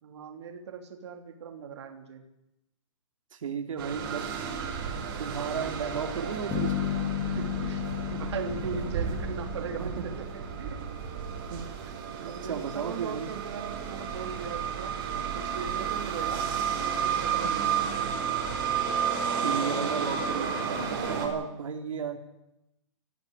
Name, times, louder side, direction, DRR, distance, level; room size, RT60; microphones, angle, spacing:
voice 1, 0.0-2.2 7.3-10.2 10.6-10.8 11.4-11.5 12.1-15.0 15.3-18.1 19.4-20.1 20.3-20.7 21.0-21.5, right 6 dB, 55° right, 4 dB, 3.4 m, -40 dB
voice 2, 3.3-4.3 5.2-6.9 9.8-10.1 11.5-11.9 12.5-13.3 17.4-17.6 19.4-20.8 21.1-22.2, right 6 dB, 85° right, 3 dB, 2.8 m, -34 dB
sound 1, 3.8-21.3, right 7 dB, 40° right, 4.8 m, -32 dB
sound 2, 6.5-10.5, left 10 dB, 15° left, 2.1 m, -33 dB
19.0 x 14.5 x 9.9 m, 0.90 s
hypercardioid pair, 170°, 17 cm